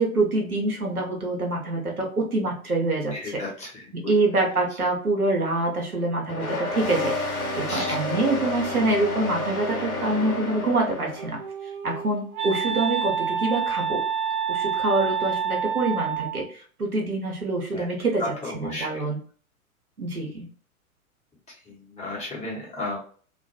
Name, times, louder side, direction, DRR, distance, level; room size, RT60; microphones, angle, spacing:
voice 1, 0.0-3.4 3.9-7.1 7.5-11.4 11.8-14.0 14.5-18.2 18.5-19.2 20.0-20.5, right 2 dB, 90° right, 0 dB, 0.9 m, -25 dB
voice 2, 3.1-3.9 7.7-7.9 17.7-17.9 18.2-19.0 21.5-23.0, left 2 dB, 15° left, -4 dB, 1.0 m, -34 dB
sound 1, 6.3-11.4, left 1 dB, 85° left, 1.0 m, -30 dB
Wind instrument woodwind instrument, 11.1-16.4, right 7 dB, 35° right, 0.7 m, -28 dB
2.5 x 2.2 x 2.7 m, 0.44 s
figure-of-eight pair, 100°, 43 cm